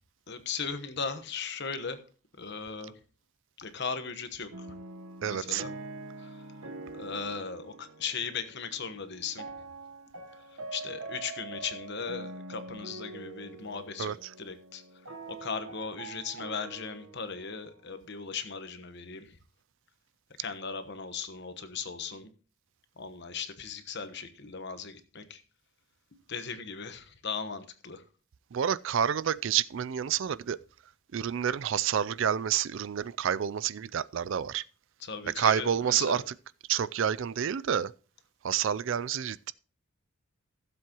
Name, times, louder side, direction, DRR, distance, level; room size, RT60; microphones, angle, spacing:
voice 1, 0.3-2.0 2.4-3.0 3.6-4.7 5.3-5.7 6.2-6.5 6.9-9.5 10.5-14.8 15.3-19.4 20.4-22.3 23.0-25.4 26.3-28.0 35.0-36.2, left 5 dB, 55° left, 1.1 m, -38 dB
sound 1, 4.5-18.5, right 3 dB, 85° right, 1.2 m, -44 dB
voice 2, 5.2-5.6 14.0-14.1 28.5-30.6 31.1-34.6 35.3-36.2 36.7-37.9 38.4-39.5, right 8 dB, 60° right, 0.4 m, -29 dB
16.0 x 7.6 x 2.9 m
head